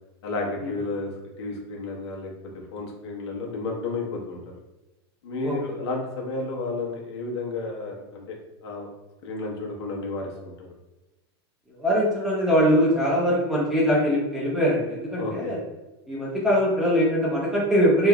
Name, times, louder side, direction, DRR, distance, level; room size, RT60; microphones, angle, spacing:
voice 1, 0.2-1.1 1.4-2.3 2.7-4.4 5.2-8.4 8.6-8.9 9.2-10.7 15.2-15.5, left 3 dB, 85° left, -2 dB, 1.1 m, -32 dB
voice 2, 11.8-15.6 16.1-18.1, equal, 5° right, -7 dB, 0.6 m, -22 dB
3.3 x 3.3 x 2.3 m, 1.0 s
supercardioid pair, 165°, 14 cm